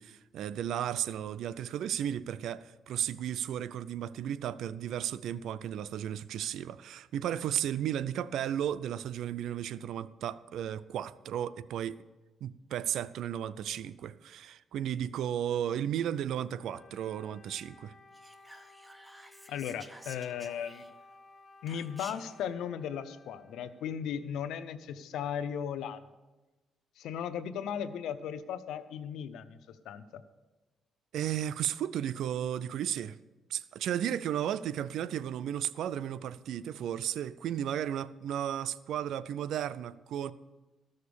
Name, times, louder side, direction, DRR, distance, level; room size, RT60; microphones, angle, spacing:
voice 1, 0.0-12.0 12.4-17.9 31.1-33.2 33.5-40.3, right 10 dB, 75° right, 0.4 m, -34 dB
Wind instrument woodwind instrument, 16.6-24.3, left 3 dB, 40° left, 0.9 m, -57 dB
Whispering, 18.1-21.1 21.7-22.4, right 1 dB, 10° right, 0.9 m, -52 dB
voice 2, 19.5-20.8 21.6-26.0 27.0-30.2, left 8 dB, 80° left, 0.7 m, -37 dB
13.5 x 6.5 x 6.9 m
cardioid pair, 90°, 0 cm